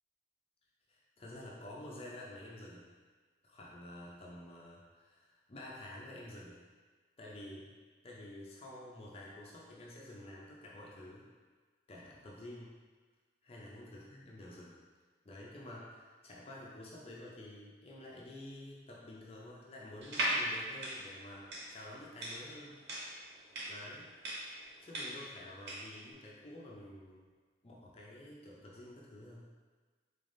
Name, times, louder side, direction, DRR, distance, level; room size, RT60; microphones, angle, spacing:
voice 1, 0.9-2.9 3.4-6.6 7.2-7.7 8.0-11.3 11.9-12.8 13.4-14.8 15.2-22.8 23.7-24.1 24.8-27.3 27.6-29.5, left 1 dB, 35° left, -4 dB, 0.5 m, -50 dB
sound 1, 20.0-26.0, right 1 dB, 65° right, 0.6 m, -38 dB
3.8 x 3.4 x 2.6 m, 1.4 s
head